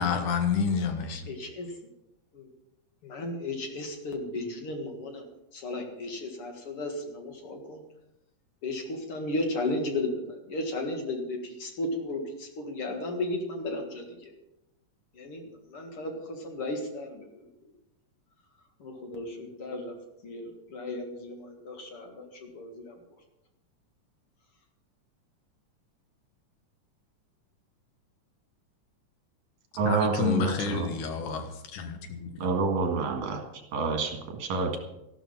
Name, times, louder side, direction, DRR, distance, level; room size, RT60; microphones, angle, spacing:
voice 1, 0.0-1.2 29.8-32.3, left 6 dB, 80° left, 7 dB, 2.9 m, -29 dB
voice 2, 1.3-1.7 2.3-2.5 3.0-5.3 5.5-7.8 8.6-14.3 15.2-15.4 15.7-17.3 18.8-19.9 20.2-22.9, left 2 dB, 50° left, 3 dB, 2.5 m, -34 dB
voice 3, 29.8-30.9 32.4-33.4 33.7-34.8, right 4 dB, 65° right, 4 dB, 3.1 m, -28 dB
13.5 x 12.5 x 5.6 m, 0.90 s
omnidirectional pair, 3.6 m